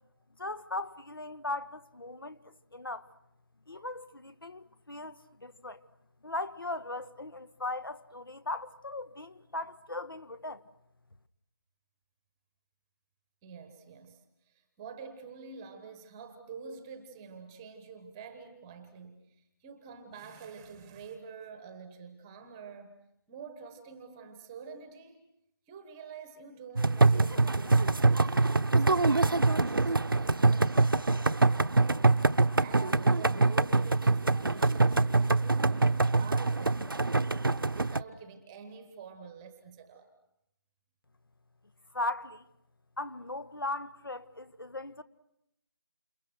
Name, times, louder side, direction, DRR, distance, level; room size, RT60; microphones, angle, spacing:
voice 1, 0.4-2.4 2.7-3.1 3.7-5.8 6.2-10.6 41.9-42.4 43.0-45.0, left 2 dB, 65° left, 1.7 m, -38 dB
voice 2, 13.4-23.0 23.3-25.3 25.7-28.4 28.7-32.2 32.6-37.2 37.7-40.1, right 5 dB, 10° right, 1.2 m, -47 dB
sound 1, 26.8-38.0, right 3 dB, 65° right, 1.0 m, -24 dB
29.0 x 28.5 x 6.4 m
figure-of-eight pair, 165°, 12 cm